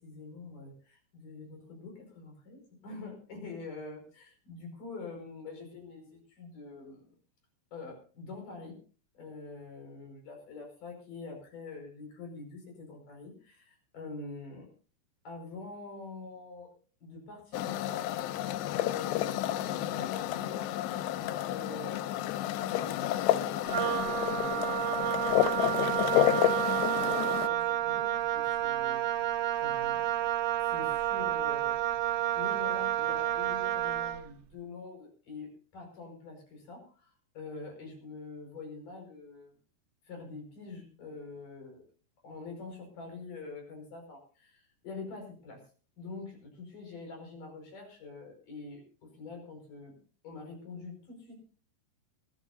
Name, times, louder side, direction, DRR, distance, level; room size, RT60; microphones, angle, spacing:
voice 1, 0.0-7.1 7.7-8.8 9.1-14.7 15.2-16.7 17.0-22.1 22.5-26.6 26.9-30.1 30.7-31.7 32.4-39.5 40.0-41.8 42.2-45.6 46.0-48.8 49.1-49.9 50.2-51.4, left 3 dB, 50° left, 2 dB, 6.5 m, -45 dB
sound 1, 17.5-27.5, left 13 dB, 90° left, 3.0 m, -30 dB
Wind instrument woodwind instrument, 23.7-34.3, right 12 dB, 90° right, 3.5 m, -30 dB
23.5 x 13.5 x 2.6 m, 0.39 s
omnidirectional pair, 4.9 m